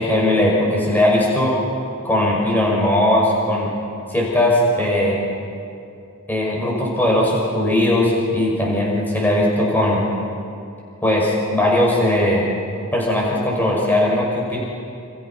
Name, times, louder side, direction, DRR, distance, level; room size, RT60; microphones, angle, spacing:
voice 1, 0.0-1.5 2.0-3.7 4.1-5.2 6.3-10.0 11.0-12.5 12.9-14.6, left 1 dB, 10° left, -3 dB, 6.1 m, -18 dB
30.0 x 29.0 x 6.0 m, 2.6 s
head